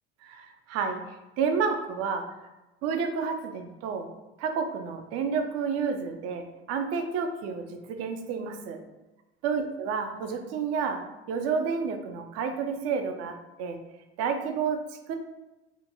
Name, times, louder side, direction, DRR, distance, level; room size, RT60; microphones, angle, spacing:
voice 1, 0.2-1.0 1.4-2.5 2.8-4.1 4.4-8.8 9.4-13.8 14.2-15.1, right 5 dB, 50° right, 6 dB, 0.4 m, -30 dB
2.5 x 2.2 x 2.8 m, 1.0 s
hypercardioid pair, 65°, 34 cm